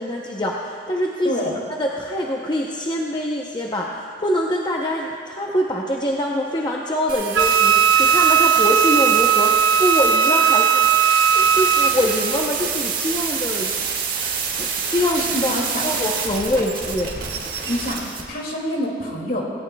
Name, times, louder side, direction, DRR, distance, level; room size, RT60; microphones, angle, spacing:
voice 1, 0.0-1.3 1.8-10.9 11.3-13.8 14.0-15.5 15.8-17.2, left 1 dB, 25° left, -1 dB, 0.7 m, -24 dB
voice 2, 1.2-1.6 15.0-15.9 17.7-19.4, equal, 50° left, -1 dB, 2.2 m, -26 dB
sound 1, 7.1-18.2, right 6 dB, 50° right, 1.6 m, -26 dB
Wind instrument woodwind instrument, 7.3-12.0, right 7 dB, 70° right, 0.3 m, -17 dB
18.5 x 17.5 x 2.2 m, 2.3 s
head